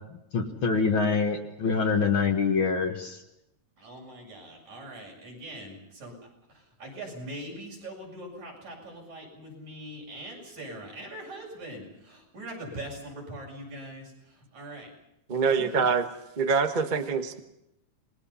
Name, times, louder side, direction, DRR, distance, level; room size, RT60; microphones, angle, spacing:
voice 1, 0.3-3.2, left 5 dB, 50° left, 4 dB, 2.1 m, -25 dB
voice 2, 3.8-14.9 15.5-15.8, right 1 dB, 75° right, -1 dB, 8.7 m, -42 dB
voice 3, 15.3-16.0 16.4-17.4, right 5 dB, 45° right, 6 dB, 0.6 m, -25 dB
27.5 x 21.0 x 5.7 m, 0.86 s
omnidirectional pair, 3.3 m